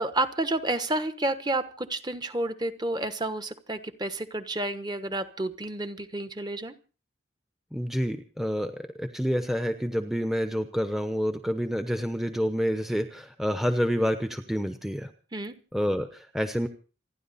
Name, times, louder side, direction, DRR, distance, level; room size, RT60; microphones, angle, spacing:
voice 1, 0.0-6.8 15.3-15.6, right 2 dB, 20° right, 10 dB, 1.1 m, -30 dB
voice 2, 7.7-15.1 15.7-16.7, equal, ahead, 7 dB, 0.9 m, -28 dB
27.5 x 10.5 x 4.1 m, 0.38 s
head